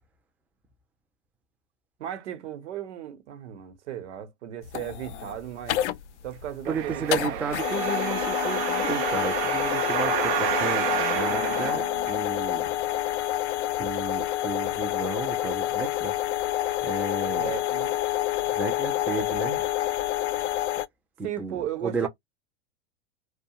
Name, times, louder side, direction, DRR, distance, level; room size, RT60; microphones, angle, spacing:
voice 1, 2.0-5.8 6.2-7.7 17.3-18.0 21.2-22.1, right 11 dB, 75° right, 1.1 m, -36 dB
sound 1, 4.6-20.9, left 14 dB, 80° left, 0.5 m, -28 dB
sound 2, 6.6-12.6 13.2-13.3, right 12 dB, 60° right, 0.7 m, -30 dB
voice 2, 6.7-12.7 13.8-16.2 16.8-17.5 18.5-19.6 21.2-22.1, right 4 dB, 5° right, 0.4 m, -33 dB
2.3 x 2.3 x 2.8 m
hypercardioid pair, 115°, 35 cm